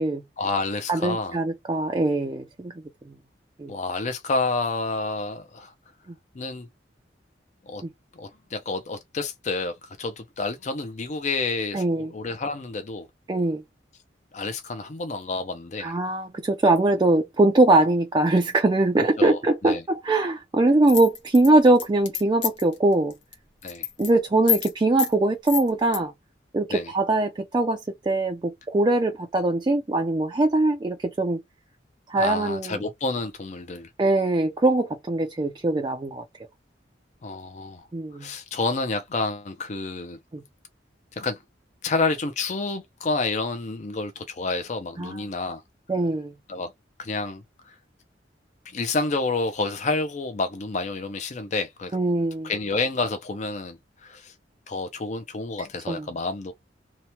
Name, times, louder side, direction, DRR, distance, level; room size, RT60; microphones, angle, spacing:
voice 1, 0.4-1.4 3.7-5.7 6.3-6.7 7.7-7.8 8.1-13.1 14.3-15.9 19.2-19.8 23.6-23.9 26.7-26.9 32.2-33.9 37.2-37.8 38.2-40.2 41.2-41.4 41.8-45.6 46.5-46.7 47.0-47.7 48.7-52.0 52.4-54.3 54.7-56.5, left 3 dB, 40° left, 0.5 m, -29 dB
voice 2, 0.9-2.7 3.6-3.7 11.7-12.1 13.3-13.6 15.8-23.1 24.0-26.1 26.5-27.8 28.0-31.4 32.1-32.8 34.0-36.2 37.9-38.3 40.3-40.4 45.0-45.2 45.9-46.3 51.9-52.5 55.9-56.0, right 2 dB, 25° right, 0.4 m, -22 dB
sound 1, 20.9-22.7 23.1-23.3 23.6-24.1 24.5-24.7 25.0-25.1 25.5-26.0, left 9 dB, 75° left, 0.8 m, -27 dB
2.9 x 2.1 x 2.9 m
head